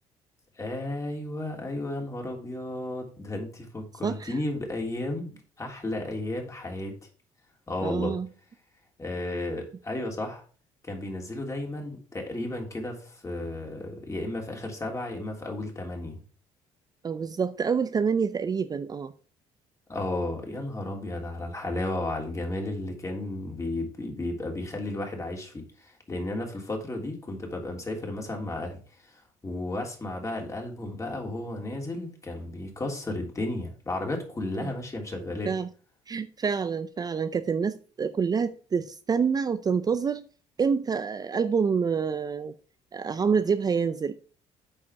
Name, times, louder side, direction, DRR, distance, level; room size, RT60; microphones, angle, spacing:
voice 1, 0.5-6.9 7.7-8.2 9.0-10.4 10.8-16.2 19.9-35.5, left 2 dB, 25° left, 3.2 m, -33 dB
voice 2, 4.0-4.3 7.8-8.3 17.0-19.1 34.6-34.7 35.4-35.7 36.1-40.2 40.6-42.5 42.9-44.1, right 6 dB, 30° right, 0.6 m, -27 dB
8.5 x 5.0 x 5.8 m
supercardioid pair, 75°, 13 cm